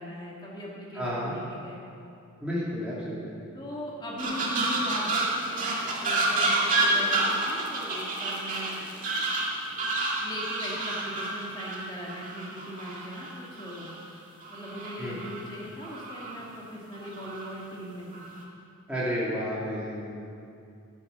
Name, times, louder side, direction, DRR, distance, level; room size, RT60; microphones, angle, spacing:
voice 1, 0.0-1.8 3.5-8.8 10.2-13.9 14.5-18.3, equal, 20° left, -4 dB, 2.0 m, -40 dB
voice 2, 0.9-1.3 2.4-3.5 15.0-15.2 18.9-20.1, equal, 5° right, -9 dB, 2.4 m, -31 dB
sound 1, 4.2-13.9 14.4-15.5 15.8-16.4 16.9-17.5 18.1-18.4, right 2 dB, 35° right, 2.2 m, -29 dB
17.0 x 8.9 x 6.7 m, 2.5 s
head